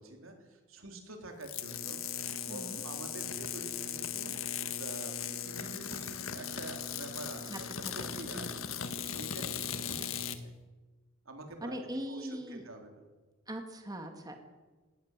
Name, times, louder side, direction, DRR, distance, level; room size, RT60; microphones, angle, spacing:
voice 1, 0.0-2.0 2.3-7.7 7.9-8.5 8.8-10.5 11.3-11.8 12.1-13.0, right 1 dB, 75° right, 3 dB, 3.7 m, -47 dB
sound 1, 1.4-10.4, left 8 dB, 75° left, 1.6 m, -38 dB
voice 2, 2.5-2.8 7.5-8.5 9.4-9.6 11.6-12.6 13.5-14.4, equal, 20° right, 4 dB, 2.0 m, -42 dB
19.5 x 18.0 x 7.4 m, 1.3 s
head